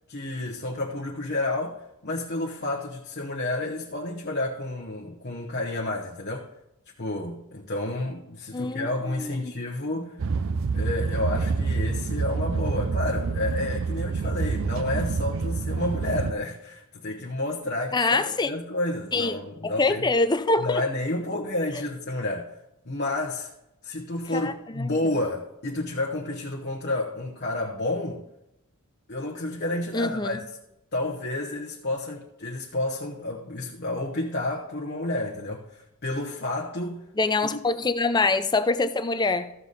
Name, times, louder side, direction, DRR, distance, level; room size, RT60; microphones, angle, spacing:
voice 1, 0.1-6.5 7.0-10.2 10.7-20.0 20.6-22.6 22.8-23.5 23.8-28.2 29.1-30.4 30.9-37.1 37.4-37.6, left 2 dB, 50° left, 1.1 m, -30 dB
voice 2, 8.5-9.5 10.0-10.1 17.9-18.5 19.1-19.4 19.6-20.8 24.3-24.9 29.9-30.4 37.2-39.5, left 3 dB, 20° left, 0.5 m, -25 dB
sound 1, 10.2-16.3, right 4 dB, 60° right, 0.5 m, -27 dB
14.0 x 6.8 x 4.1 m
head